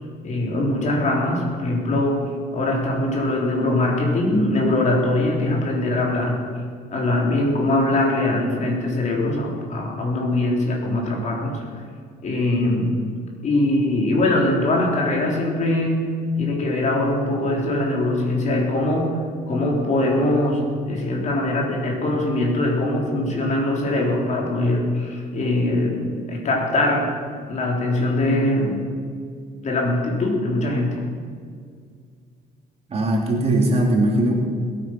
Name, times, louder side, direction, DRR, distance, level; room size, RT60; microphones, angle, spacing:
voice 1, 0.2-6.4 6.9-11.6 12.2-13.0 13.4-16.0 16.4-19.2 19.5-27.2 27.5-28.8 29.6-31.0, left 1 dB, 45° left, -1 dB, 3.8 m, -22 dB
voice 2, 32.9-34.3, right 1 dB, 35° right, 0 dB, 3.0 m, -19 dB
20.0 x 9.1 x 6.1 m, 2.1 s
cardioid pair, 110°, 17 cm